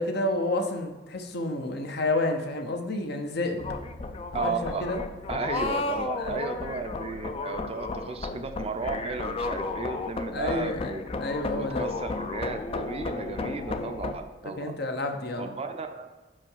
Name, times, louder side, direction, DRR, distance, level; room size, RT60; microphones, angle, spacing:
voice 1, 0.0-3.8 4.3-5.0 5.5-5.6 6.2-6.4 10.3-11.9 13.8-13.9 14.4-15.5, left 2 dB, 60° left, 5 dB, 0.8 m, -30 dB
sound 1, 3.6-14.1, left 3 dB, 30° left, 0.4 m, -33 dB
voice 2, 4.3-4.9 5.3-14.7 15.4-16.1, right 4 dB, 35° right, 7 dB, 0.5 m, -34 dB
5.5 x 5.0 x 5.6 m, 1.3 s
head